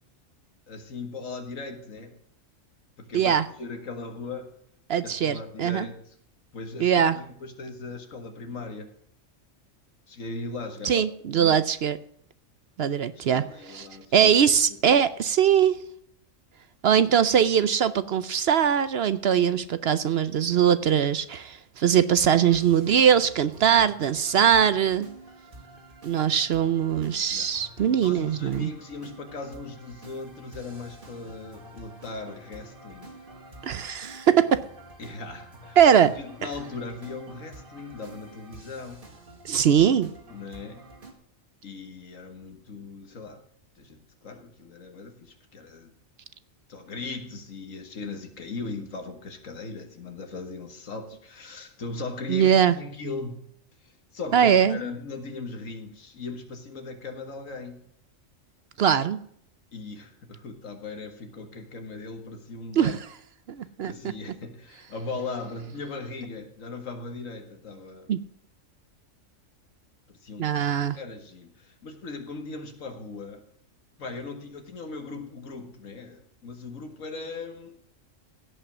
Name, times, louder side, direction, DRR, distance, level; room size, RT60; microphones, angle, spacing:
voice 1, 0.7-2.1 3.0-4.5 5.0-6.2 6.5-8.9 10.1-11.1 11.3-11.7 13.2-14.3 14.8-15.0 27.3-33.2 35.0-35.8 36.0-39.0 40.3-40.8 41.6-43.4 43.8-45.9 46.7-53.4 53.8-57.8 59.7-63.0 63.8-68.1 70.1-70.6 70.9-73.4 74.0-77.8, left 3 dB, 80° left, 6 dB, 2.0 m, -38 dB
voice 2, 3.1-3.5 4.9-5.9 6.8-7.2 10.8-12.0 12.8-13.4 13.7-13.8 14.1-15.7 16.8-25.1 26.0-28.7 33.6-34.6 35.8-36.1 39.4-40.1 52.3-52.7 54.3-54.8 58.8-59.2 62.8-63.0 63.5-63.9 68.1-68.2 70.4-71.0, right 8 dB, 60° right, 14 dB, 0.7 m, -21 dB
sound 1, 22.3-41.1, right 1 dB, 45° right, 2.1 m, -48 dB
16.5 x 5.6 x 6.0 m, 0.66 s
omnidirectional pair, 1.3 m